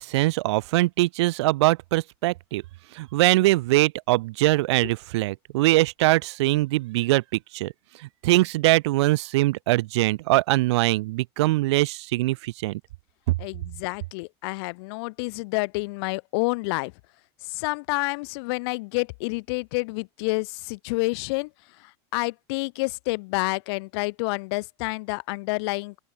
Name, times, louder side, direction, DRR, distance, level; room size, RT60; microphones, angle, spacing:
voice 1, 0.0-2.6 2.9-7.2 7.5-7.7 8.2-12.8, right 19 dB, 80° right, 2.5 m, -22 dB
voice 2, 13.4-16.9 17.4-21.5 21.8-26.0, left 27 dB, 65° left, 1.2 m, -29 dB
open air
supercardioid pair, 140°, 14 cm